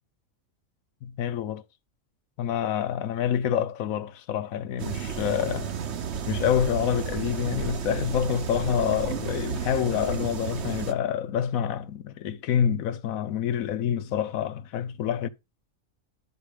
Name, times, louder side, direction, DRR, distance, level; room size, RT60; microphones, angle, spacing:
voice 1, 1.0-1.6 2.4-5.7 6.3-15.3, left 9 dB, 90° left, 1.1 m, -27 dB
sound 1, 4.8-10.9, right 7 dB, 60° right, 1.0 m, -32 dB
11.5 x 4.5 x 5.0 m
omnidirectional pair, 1.4 m